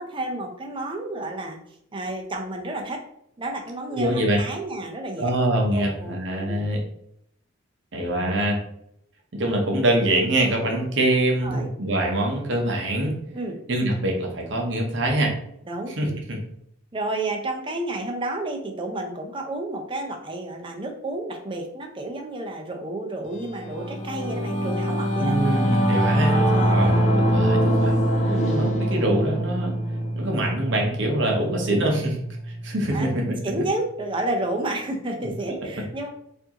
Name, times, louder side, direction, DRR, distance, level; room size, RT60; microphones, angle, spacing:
voice 1, 0.0-1.6 1.9-3.0 3.4-5.3 5.7-6.7 11.4-11.7 13.3-13.6 15.7-16.2 16.9-25.3 26.5-27.0 28.3-28.5 32.9-33.1 33.4-36.1, right 2 dB, 25° right, 2 dB, 0.5 m, -31 dB
voice 2, 3.9-4.4 5.2-6.8 7.9-8.6 9.3-13.2 13.7-15.3 15.9-16.4 25.2-27.9 28.5-29.7 30.1-32.2 32.5-33.3 35.2-35.5, right 1 dB, 60° right, 0 dB, 0.8 m, -24 dB
Singing / Musical instrument, 23.4-33.1, equal, 35° left, 0.5 m, -23 dB
4.5 x 2.6 x 2.9 m, 0.74 s
head